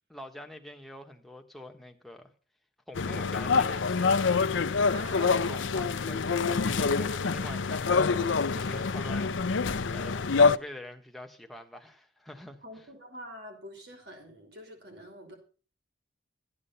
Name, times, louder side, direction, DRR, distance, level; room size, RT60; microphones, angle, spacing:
voice 1, 0.1-2.3 2.9-4.3 5.1-12.9, left 1 dB, ahead, 1.3 m, -45 dB
sound 1, 3.0-10.6, left 4 dB, 85° left, 0.6 m, -26 dB
voice 2, 4.9-5.4 12.6-15.3, equal, 60° right, 5.2 m, -46 dB
14.0 x 9.8 x 5.6 m
head